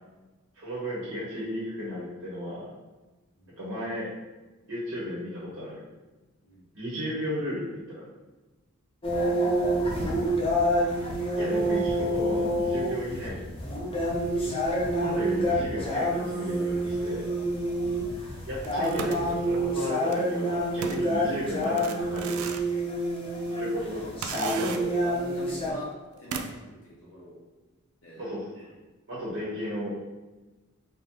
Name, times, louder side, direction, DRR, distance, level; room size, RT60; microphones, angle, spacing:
voice 1, 0.6-2.7 3.6-4.1 4.7-5.8 6.7-8.1 9.2-9.4 11.4-13.4 14.4-14.6 15.0-17.2 18.5-22.6 23.6-24.9 28.2-28.7 29.1-30.0, equal, 60° right, -7 dB, 1.3 m, -34 dB
sound 1, 9.0-25.7, right 1 dB, 25° left, 0.7 m, -28 dB
sound 2, 18.6-20.2 20.8-22.8 23.2-23.3 24.2-25.1 25.5-25.6 26.3-26.7, right 6 dB, 80° right, 0.4 m, -37 dB
voice 2, 23.9-24.2 24.5-25.9 26.2-27.4 28.0-28.2, equal, 80° left, -7 dB, 1.3 m, -44 dB
3.6 x 2.9 x 3.9 m, 1.2 s
head